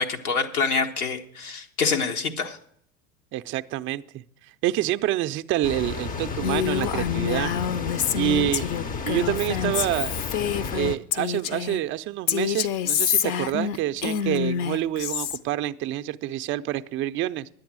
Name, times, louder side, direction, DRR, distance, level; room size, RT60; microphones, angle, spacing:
voice 1, 0.0-2.6, left 5 dB, 90° left, 1.3 m, -26 dB
voice 2, 3.3-4.2 4.6-7.5 8.2-8.8 9.1-10.2 10.7-17.5, right 13 dB, 30° right, 0.4 m, -27 dB
sound 1, 5.6-11.0, left 5 dB, 20° left, 0.5 m, -32 dB
Female speech woman speaking, 6.4-11.8 12.3-15.4, left 9 dB, 55° left, 0.7 m, -27 dB
10.5 x 8.9 x 6.1 m
hypercardioid pair, 90°, 44 cm